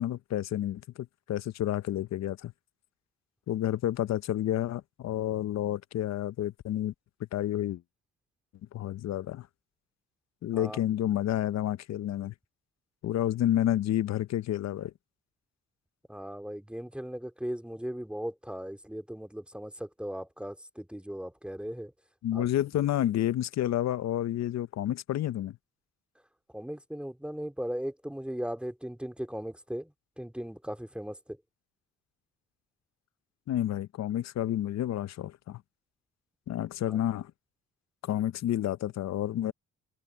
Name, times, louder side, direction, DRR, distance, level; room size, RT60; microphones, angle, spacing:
voice 1, 0.0-2.5 3.5-6.9 7.3-7.8 8.7-9.5 10.4-12.3 13.0-14.9 22.2-25.6 33.5-35.6 36.5-37.3 38.0-39.5, left 12 dB, 60° left, 0.7 m, -30 dB
voice 2, 16.1-21.9 22.3-22.5 26.5-31.4 36.9-37.0, equal, 5° right, 2.5 m, -38 dB
cardioid pair, 90°, 30 cm